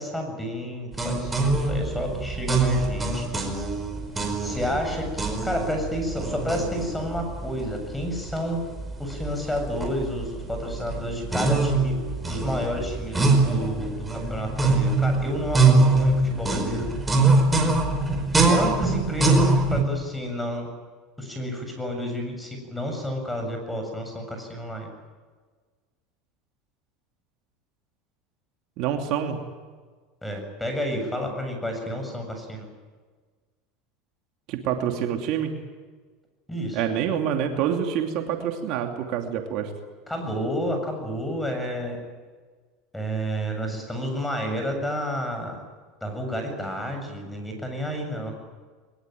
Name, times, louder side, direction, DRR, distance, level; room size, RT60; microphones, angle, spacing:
voice 1, 0.0-3.3 4.4-8.6 9.0-12.0 12.3-16.8 18.5-20.7 21.2-24.9 30.2-32.7 36.5-36.8 40.1-42.0 42.9-45.6 46.0-48.3, equal, 5° left, 4 dB, 7.5 m, -30 dB
sound 1, 0.9-19.8, right 3 dB, 10° right, 5.0 m, -24 dB
voice 2, 28.8-29.4 34.5-35.5 36.7-39.7, right 9 dB, 60° right, 4 dB, 2.7 m, -26 dB
22.5 x 21.5 x 9.3 m, 1.4 s
supercardioid pair, 120°, 0 cm